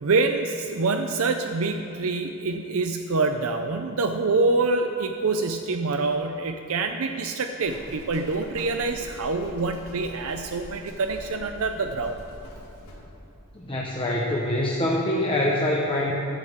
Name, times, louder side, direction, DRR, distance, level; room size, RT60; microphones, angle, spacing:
voice 1, 0.0-12.2, right 3 dB, 65° right, 6 dB, 0.6 m, -26 dB
Livestock farm animals working animals, 7.6-13.0, equal, 80° left, 2.8 m, -43 dB
voice 2, 13.5-16.1, left 1 dB, 25° left, -3 dB, 1.0 m, -25 dB
14.5 x 12.5 x 3.6 m, 3.0 s
head